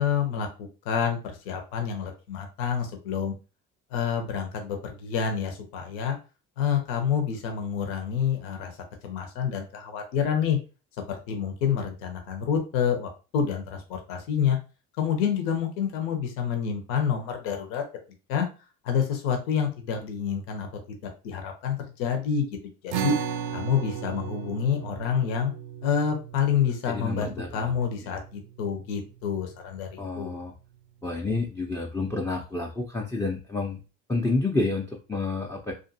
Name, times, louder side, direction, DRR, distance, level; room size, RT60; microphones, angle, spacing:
voice 1, 0.0-3.3 3.9-6.2 6.6-8.8 9.0-10.6 11.1-14.6 15.0-17.8 18.3-18.5 18.8-21.0 21.2-22.6 22.8-23.2 23.5-25.5 25.8-30.4, left 7 dB, 75° left, 4 dB, 0.7 m, -28 dB
sound 1, 22.9-29.5, right 8 dB, 75° right, 0.5 m, -36 dB
voice 2, 26.9-27.7 28.1-28.2 30.0-30.5 31.0-33.8 34.1-35.7, left 3 dB, 5° left, 0 dB, 0.4 m, -29 dB
2.5 x 2.4 x 2.6 m, 0.33 s
hypercardioid pair, 65°, 39 cm